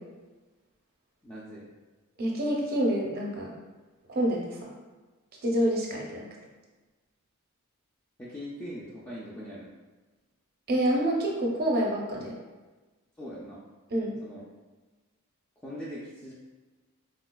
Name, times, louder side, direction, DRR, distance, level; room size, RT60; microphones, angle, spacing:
voice 1, 1.2-1.7 8.2-9.7 13.2-13.6 14.2-14.4 15.6-16.3, equal, 10° left, -9 dB, 0.4 m, -41 dB
voice 2, 2.2-3.5 4.1-4.7 5.4-6.3 10.7-12.3 13.9-14.2, right 1 dB, 45° right, -2 dB, 0.6 m, -27 dB
4.0 x 2.3 x 2.2 m, 1.3 s
head